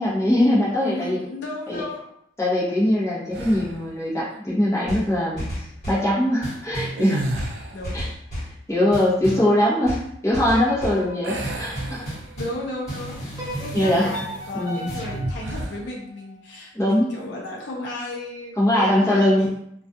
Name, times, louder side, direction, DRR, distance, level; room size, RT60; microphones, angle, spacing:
voice 1, 0.0-1.2 1.7-1.8 2.4-5.5 5.9-7.4 7.9-8.1 8.7-10.0 10.2-12.1 13.7-14.1 14.5-14.9 16.7-17.1 18.6-19.5, left 1 dB, 15° left, -7 dB, 0.7 m, -21 dB
voice 2, 0.8-2.0 7.7-7.9 9.3-9.6 10.9-11.1 12.4-13.3 13.6-19.6, left 2 dB, 60° left, -2 dB, 0.5 m, -34 dB
sound 1, 3.3-4.0 6.9-8.0 11.2-12.7 13.1-13.3 15.4-15.9, right 1 dB, 70° right, 0.4 m, -32 dB
sound 2, 4.9-6.1 6.4-7.0 7.3-8.6 8.9-9.5 9.8-11.0 11.4-12.6 12.9-15.4, equal, 40° left, 1.2 m, -32 dB
sound 3, 10.5-12.6 13.4-16.5, right 1 dB, 20° right, 0.5 m, -38 dB
2.3 x 2.3 x 2.6 m, 0.72 s
head